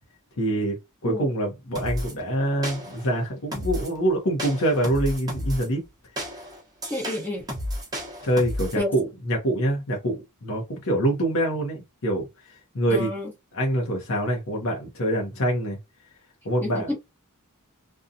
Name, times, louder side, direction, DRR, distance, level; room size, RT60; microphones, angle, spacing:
voice 1, 0.4-5.8 8.2-13.1 13.5-15.8 16.4-16.9, right 1 dB, 65° left, 0.8 m, -25 dB
sound 1, 1.7-2.1 2.6-3.1 3.5-4.0 4.4-5.7 6.2-8.8, equal, 15° right, 0.8 m, -32 dB
voice 2, 6.9-7.5 8.8-8.9 12.9-13.3 16.6-16.9, left 1 dB, 10° left, 0.9 m, -29 dB
2.6 x 2.2 x 2.5 m
head